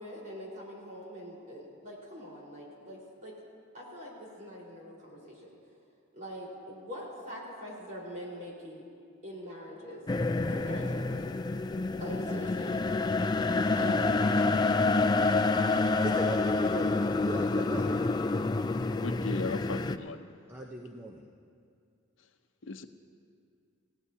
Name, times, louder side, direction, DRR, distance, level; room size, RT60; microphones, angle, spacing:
voice 1, 0.0-3.3 3.7-5.5 6.1-8.8 9.2-10.0 10.5-11.3 12.0-12.8 13.7-14.8, equal, 40° right, -4 dB, 4.4 m, -43 dB
sound 1, 10.1-20.0, left 3 dB, 20° left, 0.3 m, -28 dB
voice 2, 15.6-18.0 20.5-21.3, equal, 10° right, 0 dB, 0.7 m, -38 dB
voice 3, 18.9-20.3 22.7-22.9, left 3 dB, 75° left, 7 dB, 0.7 m, -36 dB
29.5 x 17.0 x 2.8 m, 2.3 s
head